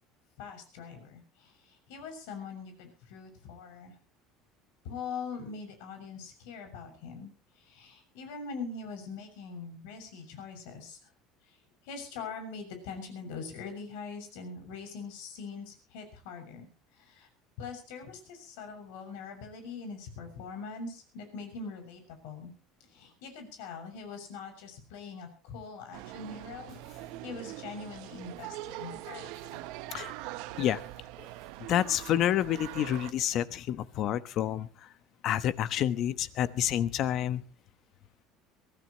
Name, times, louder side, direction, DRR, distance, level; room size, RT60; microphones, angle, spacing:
voice 1, 0.4-3.9 4.8-7.3 7.6-11.0 11.8-17.3 17.6-22.5 22.8-26.8 27.2-29.6, left 5 dB, 85° left, 6 dB, 6.8 m, -43 dB
sound 1, 25.9-33.1, right 17 dB, 75° right, 0.9 m, -43 dB
voice 2, 31.7-34.9 35.2-37.4, left 11 dB, 50° left, 14 dB, 1.1 m, -29 dB
23.5 x 16.0 x 3.1 m, 0.34 s
cardioid pair, 140°, 0 cm